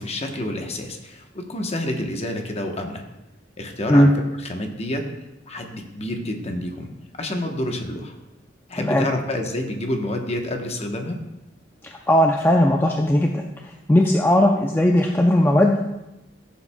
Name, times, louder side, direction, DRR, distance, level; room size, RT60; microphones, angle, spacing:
voice 1, 0.0-3.0 3.6-4.1 4.4-5.1 5.5-6.9 7.2-8.1 8.7-11.2, left 1 dB, 35° left, 3 dB, 1.0 m, -28 dB
voice 2, 12.1-13.4 13.9-15.9, left 1 dB, 10° left, 2 dB, 0.4 m, -17 dB
14.0 x 7.1 x 2.2 m, 0.97 s
head